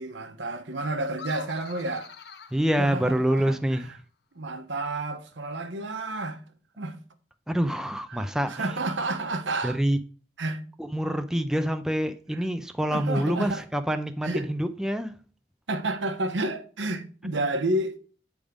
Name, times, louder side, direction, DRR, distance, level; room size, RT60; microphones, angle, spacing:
voice 1, 0.0-2.1 2.8-3.5 4.3-6.4 6.8-7.0 8.1-9.8 10.4-10.6 12.9-13.6 14.2-14.5 15.7-18.0, right 2 dB, 90° right, 1.0 m, -30 dB
sound 1, 1.1-3.6, left 5 dB, 65° left, 0.7 m, -45 dB
voice 2, 2.5-3.9 7.5-8.7 9.6-10.0 10.8-15.2, equal, 5° right, 0.4 m, -26 dB
8.3 x 3.6 x 5.0 m
head